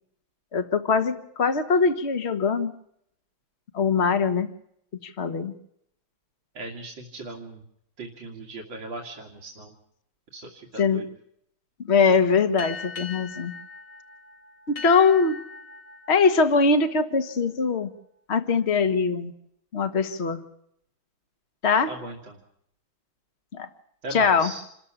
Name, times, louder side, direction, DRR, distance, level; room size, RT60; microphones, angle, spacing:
voice 1, 0.5-2.7 3.7-4.5 5.0-5.5 10.7-11.1 11.8-13.5 14.7-15.4 16.1-17.9 18.3-19.3 19.7-20.4 21.6-22.0 23.5-23.7 24.1-24.5, left 5 dB, 35° left, 10 dB, 1.6 m, -22 dB
voice 2, 6.5-7.6 8.0-9.7 10.3-11.0 21.9-22.4 24.0-24.6, right 2 dB, 75° right, 1 dB, 3.0 m, -38 dB
sound 1, 12.6-17.7, left 4 dB, 80° left, 3.9 m, -41 dB
27.5 x 14.0 x 8.7 m, 0.73 s
omnidirectional pair, 2.1 m